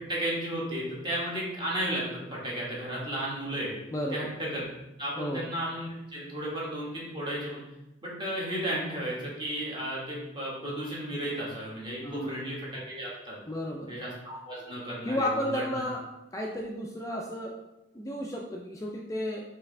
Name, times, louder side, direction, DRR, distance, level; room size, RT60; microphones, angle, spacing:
voice 1, 0.1-3.7 4.1-4.6 5.0-7.6 8.0-13.4 13.9-15.8, right 1 dB, 25° right, -6 dB, 1.4 m, -34 dB
voice 2, 3.9-4.3 5.2-5.5 12.0-12.4 13.5-13.9 15.1-16.0 16.3-17.5 17.9-19.4, equal, 15° left, 0 dB, 0.4 m, -32 dB
4.7 x 3.4 x 3.2 m, 0.93 s
head